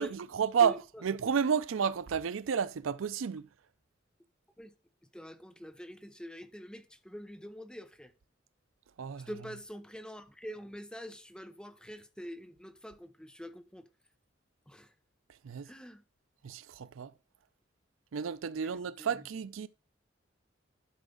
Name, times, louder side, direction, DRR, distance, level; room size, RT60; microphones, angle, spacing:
voice 1, 0.0-0.8 1.0-3.5 9.0-9.3 15.4-15.7 16.4-17.1 18.1-19.7, right 7 dB, 90° right, 0.5 m, -31 dB
voice 2, 0.6-1.0 4.6-4.7 5.1-8.1 9.2-13.9 14.7-14.9 15.6-16.0 18.5-18.7 19.0-19.2, equal, 5° left, 0.7 m, -45 dB
11.5 x 5.0 x 3.7 m
head